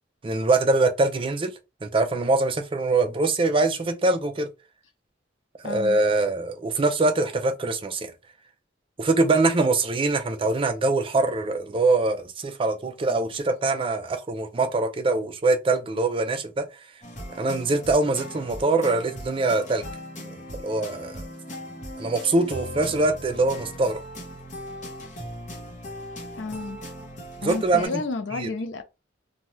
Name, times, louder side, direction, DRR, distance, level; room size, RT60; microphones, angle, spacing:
voice 1, 0.2-1.5 1.8-4.5 5.6-8.1 9.0-16.6 17.4-19.9 20.3-21.2 22.0-24.0 27.4-27.9 28.3-28.5, right 3 dB, 30° right, 0.4 m, -23 dB
voice 2, 5.6-6.0 26.3-26.8 27.4-28.8, left 3 dB, 75° left, 0.5 m, -31 dB
sound 1, 17.0-27.9, equal, 40° left, 0.8 m, -39 dB
2.7 x 2.2 x 3.0 m
head